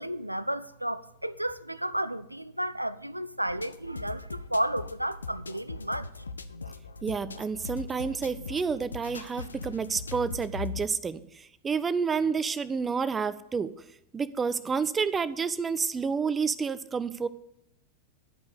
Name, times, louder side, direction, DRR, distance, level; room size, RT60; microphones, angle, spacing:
voice 1, 0.0-6.1, right 1 dB, 85° right, 0.4 m, -32 dB
sound 1, 3.5-10.9, left 4 dB, 75° left, 0.5 m, -40 dB
voice 2, 7.0-13.7 14.1-17.3, right 5 dB, 15° right, 0.5 m, -29 dB
11.5 x 5.3 x 6.8 m
figure-of-eight pair, 90°, 0 cm